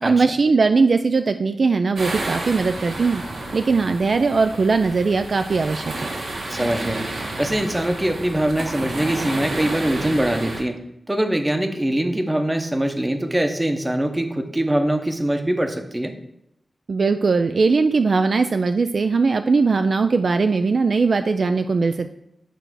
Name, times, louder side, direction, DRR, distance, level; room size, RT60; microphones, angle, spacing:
voice 1, 0.0-3.2 3.5-5.9 16.9-22.1, right 4 dB, 55° right, 8 dB, 0.3 m, -19 dB
sound 1, 2.0-10.6, right 2 dB, 75° right, 1.5 m, -31 dB
voice 2, 6.5-7.0 7.4-10.8 11.1-16.1, right 1 dB, 15° right, 6 dB, 0.8 m, -23 dB
9.1 x 3.3 x 6.1 m, 0.81 s
wide cardioid pair, 115°, 0 cm